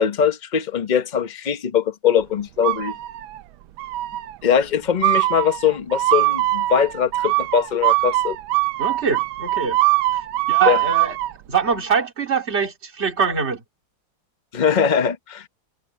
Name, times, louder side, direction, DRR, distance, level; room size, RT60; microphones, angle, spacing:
voice 1, 0.0-3.0 4.4-8.4 10.7-10.8 14.5-15.5, left 8 dB, 40° left, 0.7 m, -21 dB
sound 1, 2.6-3.4 3.8-4.3 5.0-11.3, right 17 dB, 80° right, 1.4 m, -22 dB
voice 2, 8.8-9.8 10.5-11.2 11.5-13.6, right 6 dB, 30° right, 2.7 m, -23 dB
omnidirectional pair, 2.3 m